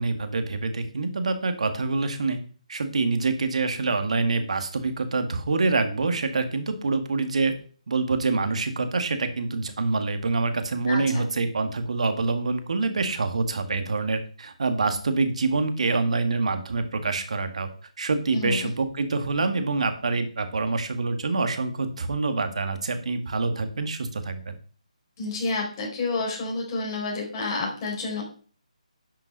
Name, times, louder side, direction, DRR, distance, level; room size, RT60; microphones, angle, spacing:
voice 1, 0.0-2.4 2.7-7.5 7.9-17.7 18.0-24.6, right 3 dB, 60° right, 7 dB, 1.9 m, -26 dB
voice 2, 18.3-18.7 25.2-28.2, left 3 dB, 30° left, -2 dB, 4.3 m, -29 dB
11.0 x 5.9 x 5.4 m, 0.43 s
figure-of-eight pair, 160°, 4 cm